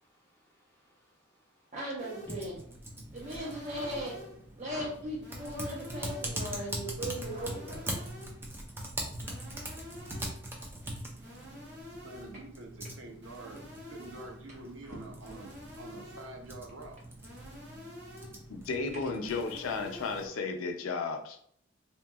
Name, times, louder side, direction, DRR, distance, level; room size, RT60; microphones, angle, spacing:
voice 1, 0.0-1.7 6.5-6.8 8.6-9.3, equal, 10° left, -8 dB, 1.2 m, -66 dB
voice 2, 1.7-2.6 3.1-4.2 4.5-7.9, equal, 35° right, -3 dB, 0.8 m, -38 dB
sound 1, 2.0-2.5 3.2-4.5 5.2-6.5 7.2-8.5 9.2-10.5 11.2-12.5 13.2-14.5 15.2-16.5 17.2-18.5 19.2-20.5, left 1 dB, 55° right, 1.0 m, -49 dB
Typing, 2.2-20.3, right 1 dB, 10° right, 0.3 m, -42 dB
voice 3, 12.0-13.6 13.9-17.0, right 2 dB, 75° right, 3 dB, 0.5 m, -47 dB
voice 4, 18.5-21.4, left 4 dB, 90° left, 5 dB, 0.4 m, -34 dB
2.8 x 2.6 x 2.3 m, 0.63 s
head